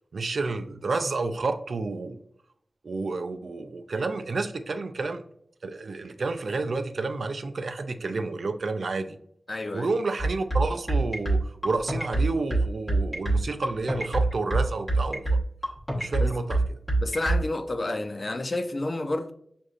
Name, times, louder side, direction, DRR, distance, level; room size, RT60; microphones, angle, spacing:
voice 1, 0.1-2.2 2.8-5.2 5.6-9.2 9.7-15.4 15.9-16.8, right 3 dB, 70° right, 0.3 m, -30 dB
voice 2, 9.5-9.9 16.2-16.3 17.0-19.3, left 2 dB, 40° left, 0.4 m, -30 dB
sound 1, 10.2-17.4, right 2 dB, 10° left, 1.1 m, -24 dB
6.3 x 2.5 x 2.4 m
wide cardioid pair, 110°, 0 cm